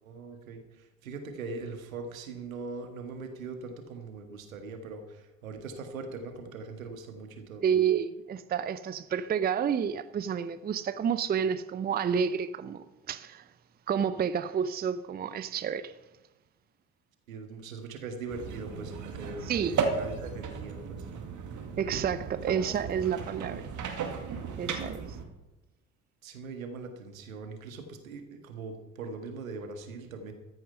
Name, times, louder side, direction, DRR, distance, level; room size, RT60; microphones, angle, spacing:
voice 1, 0.0-7.6 17.3-21.0 26.2-30.3, right 4 dB, 80° right, 1.7 m, -41 dB
voice 2, 7.6-13.4 13.9-15.9 19.5-19.8 21.8-23.6 24.6-25.0, right 7 dB, 25° right, 0.6 m, -30 dB
sound 1, 18.3-25.2, right 5 dB, 45° right, 2.2 m, -35 dB
14.0 x 9.4 x 5.5 m
figure-of-eight pair, 60°, 40 cm